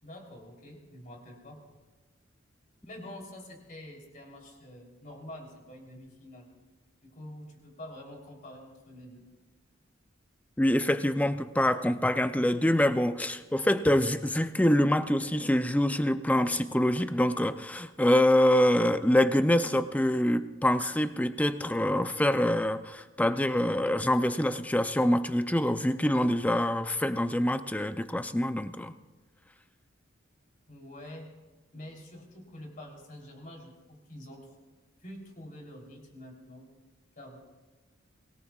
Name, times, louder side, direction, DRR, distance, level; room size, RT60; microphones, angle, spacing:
voice 1, 0.0-1.6 2.9-6.5 7.0-9.3 30.7-31.3 31.7-34.6 35.0-36.7 37.2-37.4, left 1 dB, 45° left, 0 dB, 3.4 m, -46 dB
voice 2, 10.6-28.9, left 1 dB, 5° left, 10 dB, 0.4 m, -25 dB
25.0 x 18.0 x 2.4 m, 1.3 s
head